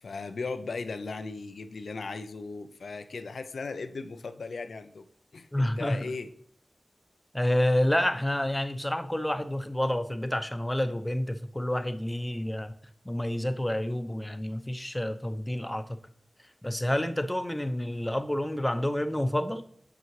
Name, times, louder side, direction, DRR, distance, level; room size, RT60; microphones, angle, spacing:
voice 1, 0.0-5.0 5.3-6.3, left 4 dB, 85° left, 10 dB, 0.4 m, -37 dB
voice 2, 5.5-6.0 7.3-12.7 13.0-16.0 16.6-19.6, left 1 dB, 15° left, 10 dB, 0.6 m, -29 dB
8.1 x 5.6 x 3.1 m, 0.62 s
cardioid pair, 45°, 0 cm